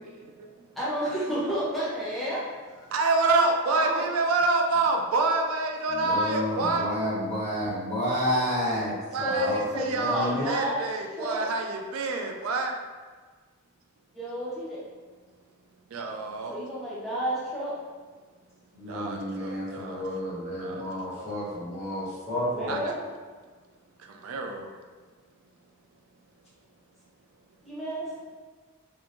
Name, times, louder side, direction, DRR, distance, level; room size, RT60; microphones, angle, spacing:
voice 1, 0.7-2.4 2.7-2.9 3.7-4.0 9.2-10.9 11.2-11.5 14.1-14.8 16.5-17.7 22.4-22.9 27.6-28.1, equal, ahead, -9 dB, 0.7 m, -31 dB
voice 2, 2.9-6.9 9.1-12.7 15.9-16.6 18.9-20.3 20.6-21.2 22.7-23.0 24.2-24.7, right 3 dB, 85° right, 3 dB, 0.4 m, -27 dB
voice 3, 6.0-9.6 9.9-10.5 18.7-22.8, equal, 30° left, -10 dB, 1.3 m, -30 dB
3.5 x 2.5 x 3.0 m, 1.4 s
head